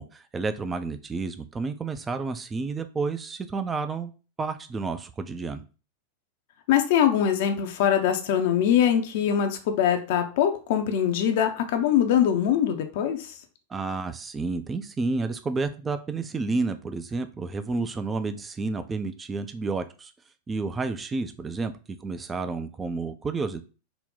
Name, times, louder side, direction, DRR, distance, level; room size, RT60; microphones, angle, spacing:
voice 1, 0.0-4.1 4.4-5.6 13.7-20.1 20.5-21.7 22.0-23.6, right 3 dB, 15° right, 10 dB, 0.3 m, -30 dB
voice 2, 6.7-13.3, left 9 dB, 50° left, 6 dB, 0.5 m, -23 dB
3.9 x 2.1 x 3.7 m, 0.34 s
figure-of-eight pair, 90°, 0 cm